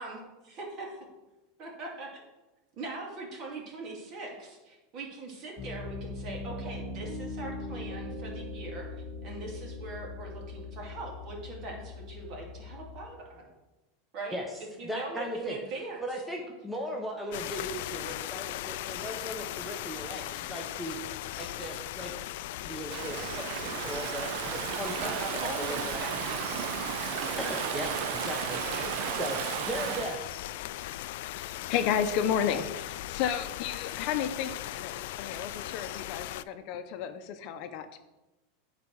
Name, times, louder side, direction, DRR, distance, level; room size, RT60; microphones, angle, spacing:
voice 1, 1.6-2.2 2.8-8.9 9.2-13.5 14.1-14.4 14.8-16.0 25.0-26.6 28.6-28.9, right 2 dB, 40° right, -1 dB, 2.9 m, -41 dB
Piano, 5.6-13.1, left 3 dB, 40° left, 1.6 m, -40 dB
voice 2, 14.8-15.6 16.0-22.1 22.6-26.4 27.1-28.6 29.1-30.4, equal, 5° right, -1 dB, 1.0 m, -38 dB
sound 1, 17.3-36.4, left 15 dB, 70° left, 0.3 m, -38 dB
Stream / Ocean, 22.9-30.2, right 10 dB, 60° right, 0.6 m, -34 dB
voice 3, 31.2-38.0, left 8 dB, 55° left, 9 dB, 0.7 m, -32 dB
9.3 x 4.1 x 6.3 m, 1.1 s
supercardioid pair, 135°, 0 cm